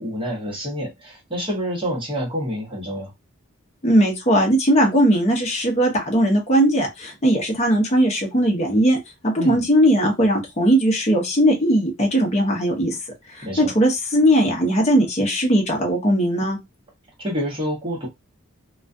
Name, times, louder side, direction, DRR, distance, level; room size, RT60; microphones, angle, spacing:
voice 1, 0.0-3.1 9.4-9.6 13.4-13.7 17.2-18.1, equal, 25° right, 0.9 m, -28 dB
voice 2, 3.8-9.0 9.2-13.0 13.3-16.6, equal, 30° left, 0.7 m, -19 dB
2.3 x 2.3 x 2.5 m
head